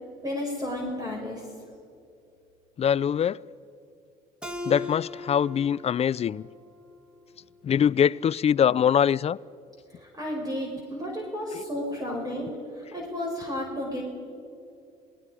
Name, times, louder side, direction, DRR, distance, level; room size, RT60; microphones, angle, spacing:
voice 1, 0.2-1.4 10.0-12.5 12.8-14.0, left 1 dB, 20° right, 5.0 m, -32 dB
voice 2, 2.8-3.4 4.7-6.4 7.6-9.4 11.5-11.6, left 8 dB, 35° left, 0.4 m, -23 dB
Keyboard (musical), 4.4-7.7, left 3 dB, 5° right, 2.0 m, -40 dB
27.5 x 20.0 x 4.9 m
supercardioid pair, 80°, 18 cm